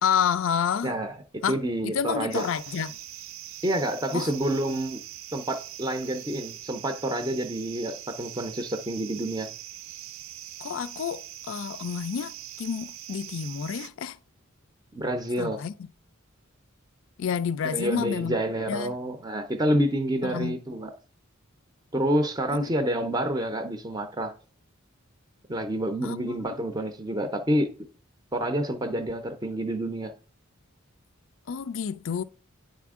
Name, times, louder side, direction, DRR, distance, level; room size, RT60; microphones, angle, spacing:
voice 1, 0.0-0.9 1.4-1.6 1.8-3.0 4.1-4.3 10.6-14.2 15.4-15.7 17.2-18.4 18.7-19.0 20.2-20.6 22.5-22.7 26.0-26.6 31.5-32.2, left 7 dB, 70° left, 0.4 m, -29 dB
voice 2, 0.8-1.1 1.5-2.5 3.6-5.0 5.3-9.5 14.9-15.6 17.6-20.9 21.9-24.3 25.5-27.7 28.3-30.1, right 1 dB, 20° right, 0.5 m, -28 dB
sound 1, 2.3-13.9, right 13 dB, 70° right, 0.4 m, -42 dB
9.3 x 4.2 x 3.6 m
head